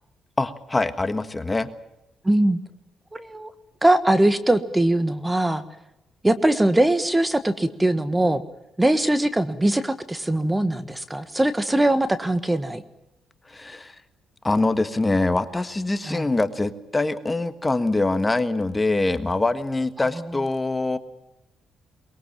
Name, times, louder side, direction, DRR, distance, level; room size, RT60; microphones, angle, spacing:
voice 1, 0.4-1.7 13.5-13.9 14.4-21.0, left 2 dB, 20° left, 10 dB, 1.5 m, -24 dB
voice 2, 2.2-2.6 3.1-3.5 3.8-5.6 6.2-8.4 8.8-12.8 16.0-16.3, right 1 dB, 10° right, 11 dB, 1.4 m, -21 dB
22.5 x 21.5 x 7.4 m, 0.93 s
cardioid pair, 90°, 0 cm